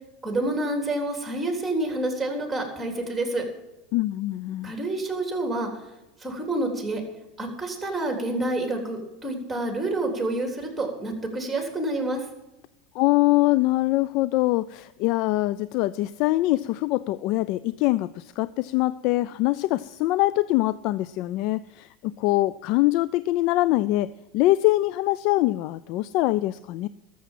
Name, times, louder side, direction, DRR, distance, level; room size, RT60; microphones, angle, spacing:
voice 1, 0.2-3.4 4.6-5.7 6.2-7.0 7.4-12.2, right 2 dB, 10° right, 2 dB, 3.7 m, -28 dB
voice 2, 3.9-4.7 13.0-24.1 24.3-26.9, left 18 dB, 60° left, 16 dB, 0.3 m, -23 dB
13.5 x 7.1 x 7.5 m, 0.97 s
hypercardioid pair, 95°, 0 cm